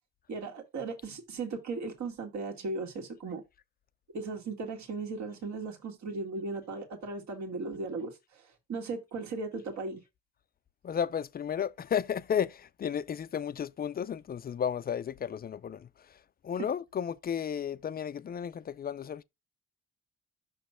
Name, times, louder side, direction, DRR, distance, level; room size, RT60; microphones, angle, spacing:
voice 1, 0.3-3.4 4.1-8.4 8.7-10.0 16.6-16.7, right 3 dB, 65° right, 1.9 m, -37 dB
voice 2, 10.8-16.2 16.4-19.2, left 8 dB, 30° left, 0.4 m, -33 dB
6.1 x 3.0 x 5.6 m
cardioid pair, 90°, 30 cm